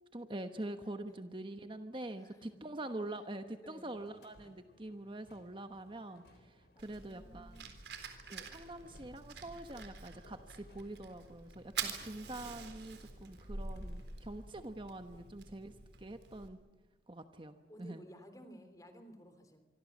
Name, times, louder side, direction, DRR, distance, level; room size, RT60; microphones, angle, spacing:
voice 1, 0.1-7.5 8.3-16.6 17.1-18.0, right 1 dB, 30° right, 8 dB, 1.2 m, -45 dB
voice 2, 2.2-2.9 3.6-3.9 6.7-7.8 9.7-9.9 15.1-15.3 17.6-19.6, equal, 20° left, 9 dB, 3.3 m, -56 dB
sound 1, 3.9-14.5, left 1 dB, 70° left, 3.8 m, -64 dB
Fire, 6.8-16.5, right 5 dB, 80° right, 3.8 m, -46 dB
26.0 x 24.5 x 7.4 m, 1.2 s
head